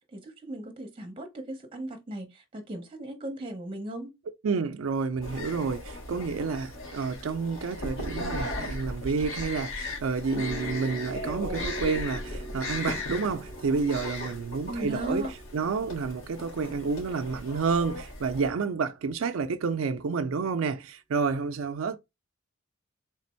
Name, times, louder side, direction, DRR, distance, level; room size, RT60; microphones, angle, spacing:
voice 1, 0.1-4.1 14.7-15.3, right 1 dB, 25° right, 0.9 m, -37 dB
voice 2, 4.4-15.2 15.5-22.0, right 5 dB, 80° right, 0.4 m, -29 dB
sound 1, 5.2-18.5, left 2 dB, 75° left, 1.7 m, -37 dB
sound 2, 10.3-17.5, right 1 dB, 55° left, 2.5 m, -44 dB
3.4 x 3.3 x 4.3 m
head